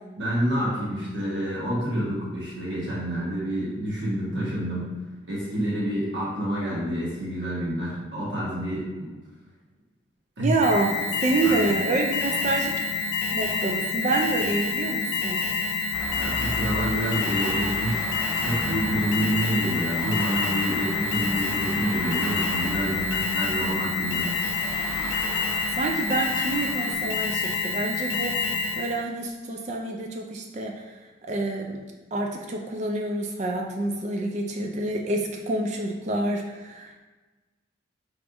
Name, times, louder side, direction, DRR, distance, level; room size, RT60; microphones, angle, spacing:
voice 1, 0.2-4.9 5.3-8.9 10.4-10.5 11.4-11.7 16.1-18.1 18.4-24.2, equal, 70° right, -6 dB, 1.3 m, -28 dB
voice 2, 10.4-12.8 13.3-15.4 25.7-31.8 32.1-37.0, right 2 dB, 35° right, 2 dB, 0.3 m, -28 dB
Alarm, 10.6-29.0, left 4 dB, 65° left, 0.4 m, -28 dB
sound 1, 15.9-26.9, left 1 dB, ahead, 1.1 m, -35 dB
4.8 x 3.4 x 2.6 m, 1.2 s
head